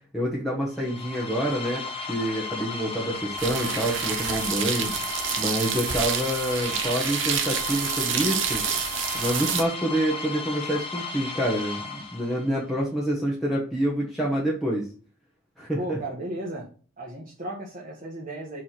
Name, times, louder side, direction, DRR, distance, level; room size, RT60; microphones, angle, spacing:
voice 1, 0.1-8.6 9.2-14.9 15.6-16.0, equal, ahead, -6 dB, 1.3 m, -27 dB
sound 1, 0.7-12.6, left 4 dB, 25° left, 1.0 m, -35 dB
sound 2, 3.4-9.6, right 8 dB, 55° right, 0.9 m, -28 dB
voice 2, 15.8-16.7 17.0-18.6, right 1 dB, 35° right, -3 dB, 1.3 m, -35 dB
4.9 x 4.6 x 5.8 m, 0.40 s
head